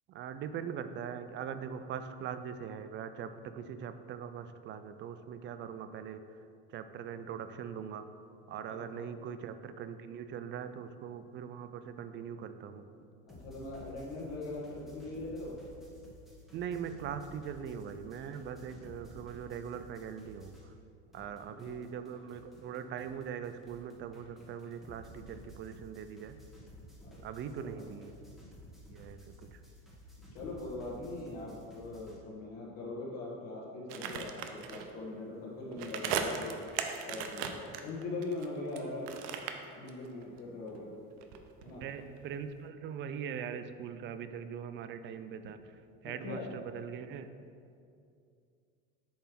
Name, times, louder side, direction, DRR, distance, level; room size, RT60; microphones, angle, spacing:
voice 1, 0.1-12.9 16.5-20.7 21.1-26.4 27.2-28.1 28.8-29.6 41.8-47.3, right 7 dB, 40° right, 11 dB, 0.4 m, -41 dB
voice 2, 8.7-9.1 13.3-15.5 21.5-21.9 27.0-27.2 27.4-27.9 30.3-36.5 37.0-37.5 37.8-39.1 39.8-41.0 41.6-41.8 46.0-46.5, left 2 dB, 55° left, -5 dB, 1.7 m, -41 dB
sound 1, 13.3-20.9 21.1-32.2, equal, ahead, 1.5 m, -54 dB
sound 2, 33.9-34.9 35.7-38.8 39.1-40.4 40.7-42.3 42.6-42.7, right 6 dB, 85° right, 0.7 m, -37 dB
8.6 x 3.4 x 6.0 m, 2.4 s
supercardioid pair, 125°, 30 cm